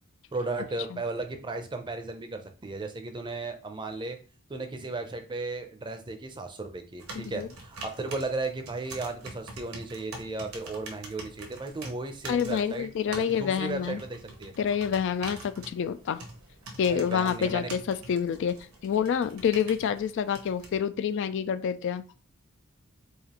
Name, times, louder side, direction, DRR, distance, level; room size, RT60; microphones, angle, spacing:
voice 1, 0.3-4.2 4.5-14.5 16.9-17.7, right 3 dB, 20° right, 6 dB, 0.5 m, -35 dB
sound 1, 7.0-20.8, right 2 dB, 85° right, 1.1 m, -45 dB
voice 2, 7.2-7.5 12.3-14.0 14.6-16.2 16.8-18.5 18.8-22.0, left 7 dB, 60° left, 12 dB, 0.3 m, -27 dB
4.8 x 2.5 x 2.9 m, 0.36 s
head